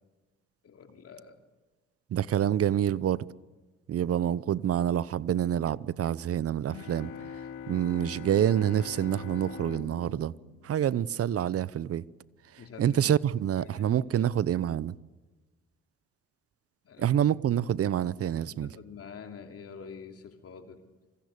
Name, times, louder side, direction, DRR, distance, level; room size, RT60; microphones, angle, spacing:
voice 1, 0.6-1.4 12.6-13.0 13.5-14.2 16.8-17.1 18.5-20.8, left 6 dB, 50° left, 2.8 m, -46 dB
voice 2, 2.1-3.2 3.9-7.1 7.7-10.3 10.6-12.0 12.8-14.9 17.0-18.8, right 10 dB, 50° right, 0.8 m, -27 dB
sound 1, 6.7-11.4, left 6 dB, 70° left, 3.2 m, -43 dB
27.0 x 25.5 x 6.8 m
supercardioid pair, 60°, 30 cm